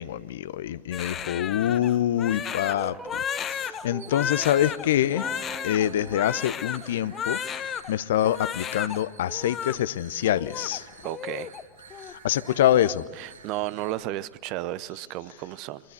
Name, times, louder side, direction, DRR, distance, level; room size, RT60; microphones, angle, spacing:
voice 1, 0.0-10.9 12.1-13.0, left 11 dB, 60° left, 0.7 m, -26 dB
Crying sobbing, 0.9-7.9 8.2-9.0 9.3-9.8 10.2-11.6 11.9-12.1 12.5-12.9, left 8 dB, 25° left, 1.0 m, -33 dB
sound 1, 2.6-7.6, right 3 dB, 10° right, 0.8 m, -44 dB
sound 2, 3.8-13.9, right 6 dB, 70° right, 5.0 m, -50 dB
voice 2, 11.0-11.5 13.2-15.8, right 15 dB, 40° right, 0.9 m, -33 dB
25.5 x 20.5 x 8.2 m
figure-of-eight pair, 90°, 0 cm